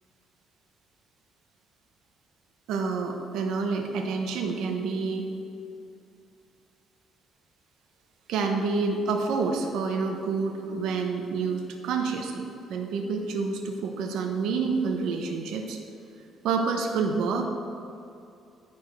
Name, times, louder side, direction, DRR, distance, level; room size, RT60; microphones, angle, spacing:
voice 1, 2.7-5.3 8.3-15.8 16.4-17.5, right 4 dB, 80° right, 3 dB, 1.0 m, -28 dB
11.5 x 4.4 x 6.2 m, 2.6 s
cardioid pair, 130°, 0 cm